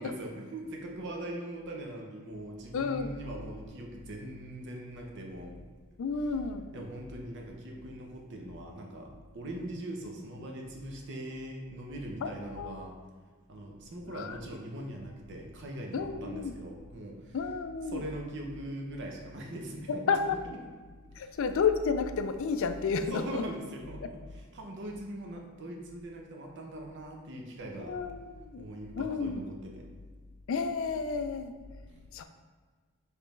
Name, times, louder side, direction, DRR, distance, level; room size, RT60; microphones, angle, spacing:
voice 1, 0.0-5.6 6.7-13.0 13.5-17.4 17.9-20.2 20.5-20.6 21.2-21.3 23.1-24.2 24.5-28.0 28.6-29.9, right 1 dB, 55° right, 1 dB, 0.7 m, -41 dB
voice 2, 2.7-3.2 6.0-6.7 12.2-12.8 14.1-14.4 15.9-16.5 17.3-18.0 19.9-20.4 21.2-23.4 27.8-28.7 29.0-29.4 30.5-31.5 32.1-32.2, left 5 dB, 60° left, 8 dB, 0.4 m, -31 dB
5.1 x 3.3 x 3.2 m, 1.5 s
head